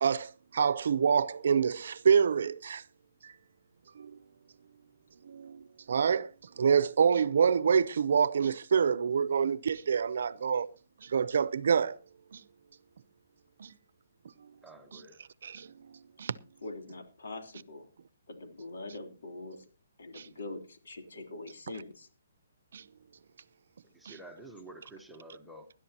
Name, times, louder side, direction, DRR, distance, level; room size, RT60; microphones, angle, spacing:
voice 1, 0.0-2.8 3.2-3.3 3.9-4.2 5.2-6.3 6.6-10.7 11.0-12.0 12.3-12.4 13.6-13.7 14.4-14.5 15.4-16.4 20.1-20.3 22.7-22.8 24.0-24.1, right 6 dB, 60° right, 0.7 m, -27 dB
voice 2, 14.6-15.2 23.9-25.7, right 2 dB, ahead, 0.9 m, -49 dB
voice 3, 16.6-17.9 18.3-19.7 20.0-22.1, left 2 dB, 80° left, 3.5 m, -43 dB
20.0 x 11.5 x 2.9 m
hypercardioid pair, 170°, 0 cm